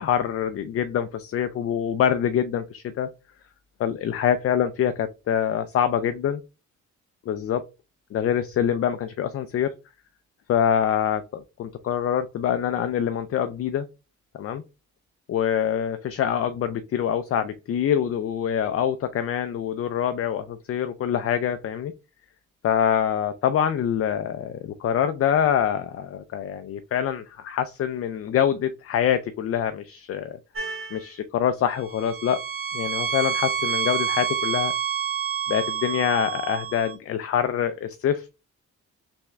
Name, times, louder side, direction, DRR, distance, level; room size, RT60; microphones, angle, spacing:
voice 1, 0.0-3.1 3.8-6.4 7.3-7.6 8.1-9.7 10.5-13.9 14.3-14.6 15.3-21.9 22.6-30.4 30.9-32.4 32.7-34.7 35.5-38.3, left 9 dB, 50° left, 0.5 m, -25 dB
sound 1, 30.6-31.1 31.8-36.9, right 8 dB, 45° right, 1.3 m, -28 dB
3.4 x 3.4 x 3.1 m
cardioid pair, 90°, 30 cm